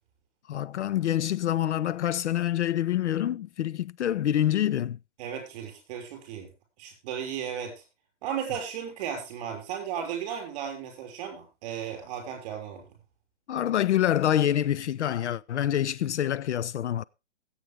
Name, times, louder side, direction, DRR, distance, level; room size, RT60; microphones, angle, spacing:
voice 1, 0.5-5.0 13.5-17.0, left 11 dB, 70° left, 0.5 m, -26 dB
voice 2, 5.2-6.5 6.8-7.7 8.2-12.9, right 8 dB, 30° right, 5.6 m, -35 dB
20.0 x 8.3 x 3.5 m
hypercardioid pair, 160°, 36 cm